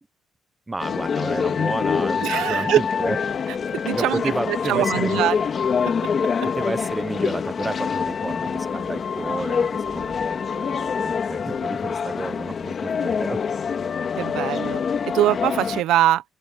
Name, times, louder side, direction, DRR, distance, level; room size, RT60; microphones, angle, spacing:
voice 1, 0.7-3.2 3.9-5.2 6.5-13.4, right 2 dB, 10° right, 0.8 m, -31 dB
sound 1, 0.8-15.8, left 6 dB, 35° left, 2.1 m, -25 dB
voice 2, 2.2-2.8 3.8-5.4 14.2-16.2, right 13 dB, 80° right, 1.0 m, -22 dB
open air
cardioid pair, 165°, 0 cm